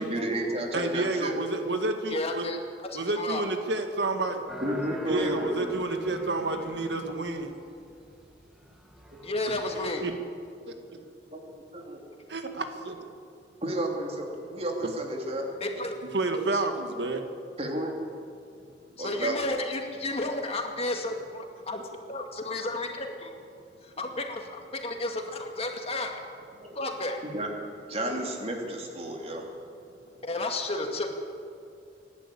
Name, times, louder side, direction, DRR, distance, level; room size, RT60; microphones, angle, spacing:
voice 1, 0.0-1.3 4.6-5.5 9.1-9.2 11.3-12.0 13.6-15.5 17.6-17.9 19.0-19.5 26.6-26.8 27.2-27.5 27.9-29.5, right 1 dB, 35° right, 1 dB, 3.3 m, -32 dB
voice 2, 0.7-2.5 2.9-4.4 5.1-7.5 9.7-10.1 10.7-10.8 12.3-13.0 16.1-17.2, right 2 dB, 75° right, 5 dB, 1.9 m, -29 dB
voice 3, 2.1-2.6 2.9-3.4 9.2-10.1 15.6-16.0 16.5-16.6 19.0-21.8 22.1-23.3 24.0-26.1 26.8-27.2 30.2-31.2, left 2 dB, 35° left, 3 dB, 2.1 m, -32 dB
sound 1, 4.5-10.1, equal, 5° right, 1.7 m, -44 dB
26.0 x 11.5 x 8.6 m, 2.4 s
head